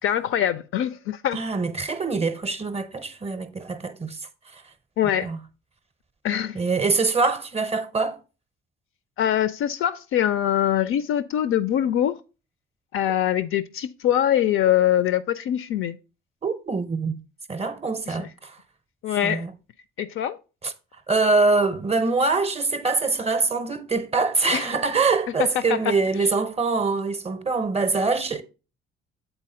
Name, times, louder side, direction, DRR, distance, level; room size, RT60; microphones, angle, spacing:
voice 1, 0.0-1.4 5.0-5.3 6.2-6.6 9.2-12.2 12.9-16.0 18.2-18.3 19.0-19.4 20.0-20.4 24.5-24.7 25.4-25.9, left 10 dB, 45° left, 0.4 m, -23 dB
voice 2, 1.3-4.2 4.5-4.6 5.2-5.4 6.5-8.2 16.4-17.2 17.5-18.6 19.2-19.5 20.6-20.7 21.1-28.4, right 4 dB, 20° right, 0.6 m, -24 dB
7.9 x 4.0 x 3.6 m
figure-of-eight pair, 45°, 30 cm